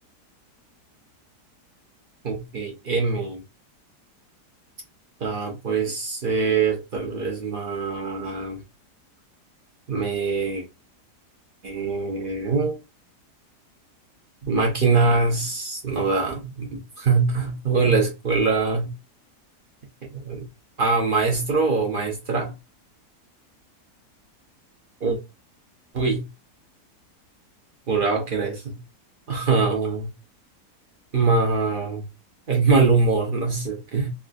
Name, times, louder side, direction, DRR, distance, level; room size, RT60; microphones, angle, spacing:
voice 1, 2.2-3.4 5.2-8.6 9.9-10.6 11.6-12.8 14.5-18.9 20.0-20.4 20.8-22.5 25.0-25.2 25.9-26.3 27.9-28.8 29.3-30.1 31.1-32.0 32.5-34.1, right 4 dB, 60° right, 0.5 m, -23 dB
3.4 x 2.3 x 2.4 m
omnidirectional pair, 1.7 m